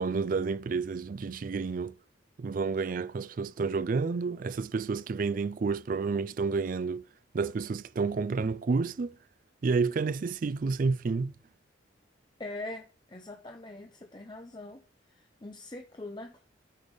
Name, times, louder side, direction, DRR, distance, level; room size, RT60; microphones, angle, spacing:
voice 1, 0.0-2.0 2.4-7.1 7.3-9.1 9.6-11.3, right 4 dB, 45° right, 0.3 m, -30 dB
voice 2, 12.4-14.8 15.1-16.4, left 2 dB, 25° left, 0.6 m, -42 dB
9.8 x 3.6 x 6.4 m
head